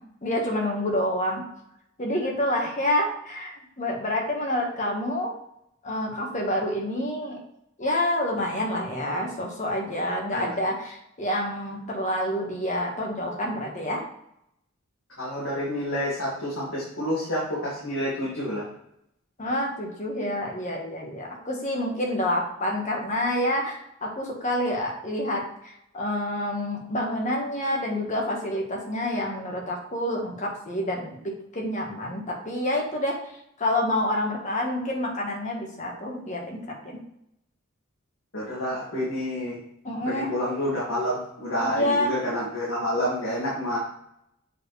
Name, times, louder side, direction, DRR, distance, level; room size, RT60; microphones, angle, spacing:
voice 1, 0.2-1.4 2.0-5.3 5.8-7.4 7.8-14.0 19.4-33.2 33.6-36.6 39.8-40.3 41.6-42.2, left 1 dB, 35° left, 0 dB, 1.5 m, -28 dB
voice 2, 15.2-18.6 38.3-39.6 40.1-43.8, equal, 70° left, -8 dB, 2.2 m, -28 dB
7.6 x 4.5 x 3.3 m, 0.77 s
head